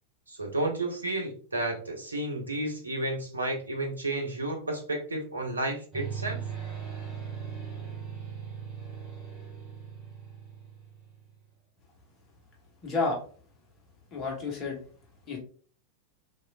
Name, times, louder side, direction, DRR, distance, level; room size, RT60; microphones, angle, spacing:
voice 1, 0.3-6.4, right 1 dB, 80° right, 3 dB, 0.6 m, -32 dB
sound 1, 5.9-11.4, right 7 dB, 25° right, 1.2 m, -39 dB
voice 2, 12.8-13.2 14.1-14.8 15.3-15.4, left 3 dB, 30° left, -2 dB, 1.1 m, -30 dB
3.0 x 2.4 x 2.3 m, 0.43 s
figure-of-eight pair, 90°, 0 cm